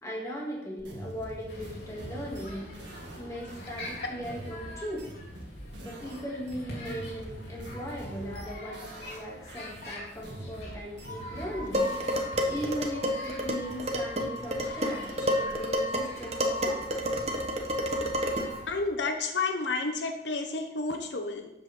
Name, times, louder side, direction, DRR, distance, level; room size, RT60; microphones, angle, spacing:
voice 1, 0.0-2.7 3.2-5.1 5.8-11.9 12.5-17.2, equal, 20° left, -3 dB, 2.8 m, -38 dB
sound 1, 0.8-6.2 6.5-9.2 9.5-12.6, right 1 dB, 85° right, 2.2 m, -44 dB
sound 2, 1.5-18.8, left 1 dB, 65° left, 3.6 m, -45 dB
Dishes pots and pans, 11.7-18.6, equal, 35° right, 1.2 m, -30 dB
voice 2, 18.7-21.5, left 3 dB, 80° left, 5 dB, 0.9 m, -31 dB
12.5 x 8.3 x 3.8 m, 0.93 s
head